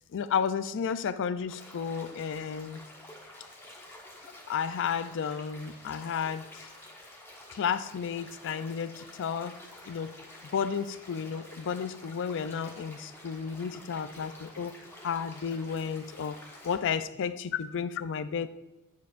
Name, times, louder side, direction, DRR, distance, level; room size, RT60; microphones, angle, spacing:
voice 1, 0.1-2.8 4.5-6.7 7.5-9.6 9.9-10.2 10.5-14.8 15.0-18.5, left 7 dB, 60° left, 13 dB, 0.4 m, -32 dB
sound 1, 1.5-16.7, left 1 dB, 10° left, 1.1 m, -50 dB
9.4 x 6.4 x 2.4 m, 0.98 s
head